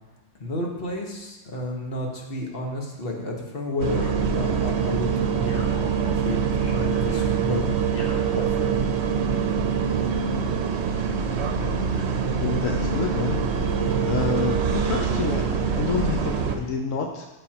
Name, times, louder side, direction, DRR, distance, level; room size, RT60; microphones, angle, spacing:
voice 1, 0.4-5.6 6.2-7.8 8.3-8.8, left 1 dB, 45° left, 0 dB, 1.5 m, -31 dB
sound 1, 3.8-16.6, right 6 dB, 65° right, 0.9 m, -24 dB
sound 2, 4.0-5.0 5.5-9.1, left 2 dB, 60° left, 1.3 m, -43 dB
voice 2, 12.4-13.7 14.0-17.3, left 5 dB, 80° left, 2 dB, 1.1 m, -28 dB
13.5 x 5.5 x 2.9 m, 1.1 s
omnidirectional pair, 1.3 m